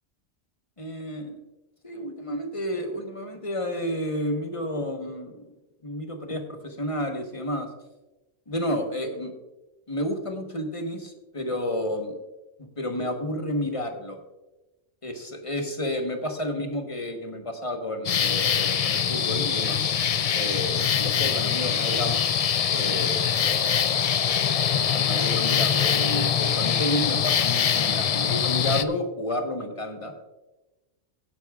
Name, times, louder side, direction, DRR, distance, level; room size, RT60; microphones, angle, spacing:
voice 1, 0.8-1.4 1.8-5.5 5.8-7.7 8.5-9.3 9.9-12.1 12.6-14.2 15.0-19.8 20.3-22.2 22.7-24.0 24.7-30.1, left 1 dB, 30° left, 4 dB, 1.2 m, -31 dB
sound 1, 18.0-28.8, left 8 dB, 60° left, 0.3 m, -23 dB
17.0 x 9.9 x 2.4 m, 1.1 s
omnidirectional pair, 1.2 m